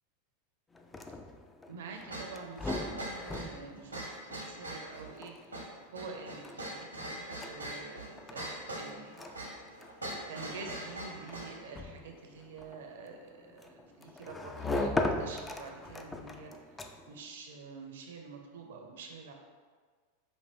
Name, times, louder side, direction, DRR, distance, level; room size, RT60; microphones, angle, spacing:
sound 1, 0.7-17.2, left 2 dB, 15° left, 0.3 m, -40 dB
voice 1, 1.7-9.3 10.3-19.3, right 4 dB, 65° right, 3 dB, 0.6 m, -47 dB
sound 2, 2.1-11.6, right 1 dB, 85° right, 1.0 m, -42 dB
5.3 x 2.6 x 3.4 m, 1.5 s
figure-of-eight pair, 90°, 0 cm